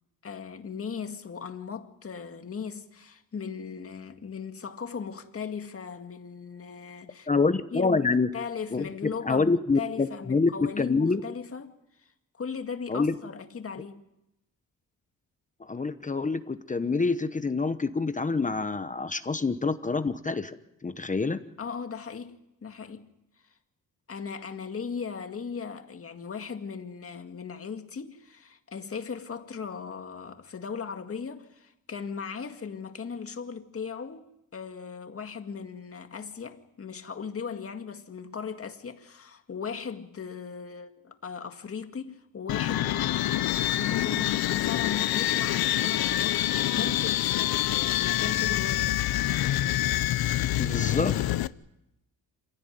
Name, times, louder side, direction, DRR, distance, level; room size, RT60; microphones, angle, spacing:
voice 1, 0.2-7.3 7.7-11.7 12.0-12.1 12.4-14.1 21.6-23.1 24.1-49.0, left 6 dB, 40° left, 2.1 m, -38 dB
voice 2, 7.3-8.3 8.7-8.9 9.2-11.2 12.9-13.2 15.6-20.5 20.8-21.4 50.6-51.2, left 4 dB, 20° left, 1.0 m, -26 dB
sound 1, 42.5-51.5, left 14 dB, 80° left, 0.8 m, -26 dB
27.0 x 17.0 x 9.4 m
cardioid pair, 120°, 36 cm